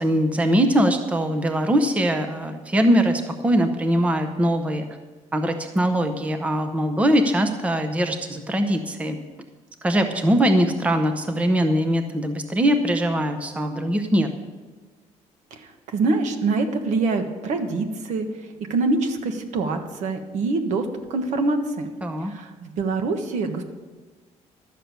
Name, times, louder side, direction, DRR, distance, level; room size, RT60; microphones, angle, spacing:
voice 1, 0.0-4.9 5.3-9.2 9.8-14.3 22.0-22.3, equal, 10° right, 7 dB, 0.7 m, -21 dB
voice 2, 15.5-21.9 22.2-23.6, right 3 dB, 70° right, 6 dB, 1.4 m, -25 dB
12.5 x 6.6 x 8.0 m, 1.3 s
cardioid pair, 175°, 13 cm